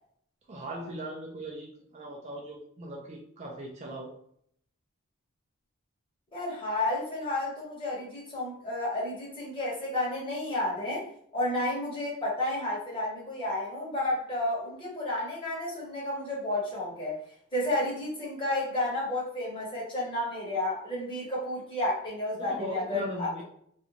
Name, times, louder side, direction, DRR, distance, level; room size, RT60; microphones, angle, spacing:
voice 1, 0.5-4.1 22.4-23.4, right 1 dB, 30° right, -1 dB, 0.4 m, -39 dB
voice 2, 6.3-11.1 11.3-17.2 17.5-23.4, left 1 dB, 25° left, -6 dB, 1.0 m, -31 dB
2.5 x 2.2 x 2.9 m, 0.66 s
head